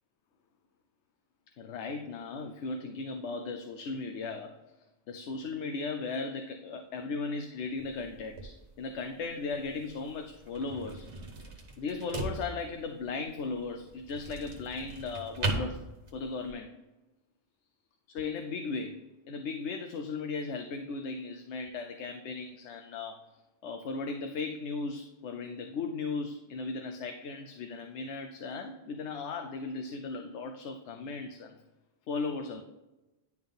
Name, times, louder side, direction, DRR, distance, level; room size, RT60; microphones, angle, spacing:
voice 1, 1.6-4.5 5.1-11.1 11.4-11.5 11.8-15.9 16.1-16.7 18.1-23.2 23.6-31.6 32.1-32.6, left 4 dB, 90° left, 6 dB, 0.9 m, -37 dB
sound 1, 7.8-16.5, right 2 dB, 90° right, 1.4 m, -39 dB
10.5 x 3.6 x 3.8 m, 1.0 s
omnidirectional pair, 1.1 m